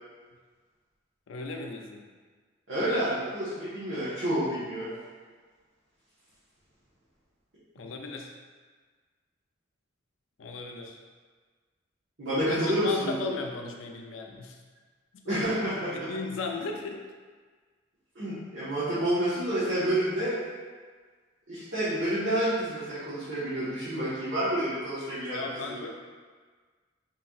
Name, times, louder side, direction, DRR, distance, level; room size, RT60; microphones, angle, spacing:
voice 1, 1.3-2.1 7.7-8.3 10.4-11.0 12.6-14.6 15.1-15.4 15.9-17.0 25.3-25.9, left 3 dB, 85° left, 2 dB, 0.4 m, -36 dB
voice 2, 2.7-4.9 12.2-13.1 15.3-16.1 18.1-20.3 21.5-25.8, right 1 dB, 65° right, -14 dB, 1.2 m, -29 dB
4.1 x 3.3 x 2.4 m, 1.5 s
head